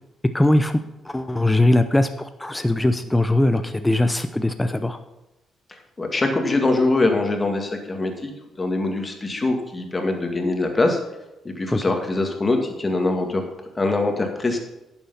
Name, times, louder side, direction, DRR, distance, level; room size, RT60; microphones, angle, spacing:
voice 1, 0.3-5.0 11.7-11.8, left 1 dB, 10° left, 9 dB, 0.7 m, -20 dB
voice 2, 6.0-8.3 8.6-11.0 11.4-13.4 13.8-14.6, left 2 dB, 25° left, 4 dB, 2.1 m, -23 dB
11.0 x 7.1 x 5.7 m, 0.96 s
cardioid pair, 90°, 0 cm